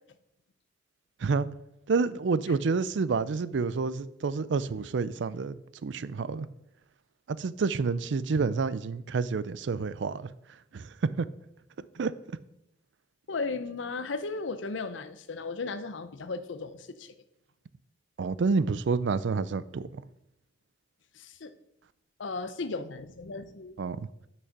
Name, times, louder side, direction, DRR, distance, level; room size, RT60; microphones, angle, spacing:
voice 1, 1.9-6.5 7.3-10.3 10.7-11.3 12.0-12.1 18.2-20.0 23.8-24.1, right 4 dB, 70° right, 0.4 m, -29 dB
voice 2, 13.3-17.1 21.1-21.5 22.2-23.7, left 3 dB, 85° left, 0.7 m, -35 dB
6.4 x 6.0 x 5.9 m
head